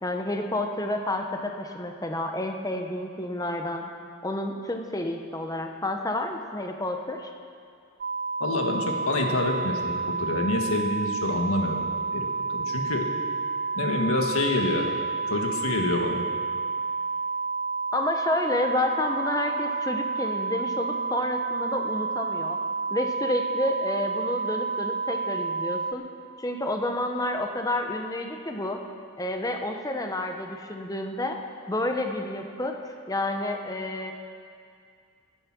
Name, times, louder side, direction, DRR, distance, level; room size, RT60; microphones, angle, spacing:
voice 1, 0.0-3.9 4.2-7.3 17.9-22.6 22.9-26.0 26.4-28.8 29.2-31.4 31.7-34.1, left 1 dB, 15° left, 4 dB, 0.9 m, -30 dB
sound 1, 8.0-25.9, right 4 dB, 35° right, 0.4 m, -30 dB
voice 2, 8.4-11.8 12.1-13.0 13.7-14.9 15.3-16.2, left 2 dB, 75° left, 2 dB, 1.6 m, -27 dB
17.0 x 10.5 x 6.1 m, 2.3 s
head